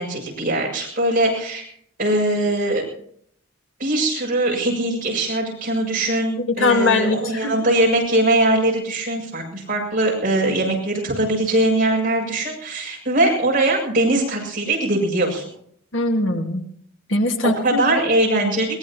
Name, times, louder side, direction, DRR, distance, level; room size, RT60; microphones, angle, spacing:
voice 1, 0.0-1.7 2.0-2.8 3.8-15.5 17.4-18.8, right 1 dB, 45° right, -1 dB, 6.9 m, -21 dB
voice 2, 6.6-7.5 15.9-16.6 17.1-17.8, left 2 dB, 75° left, 4 dB, 1.9 m, -20 dB
22.0 x 20.0 x 3.0 m, 0.66 s
head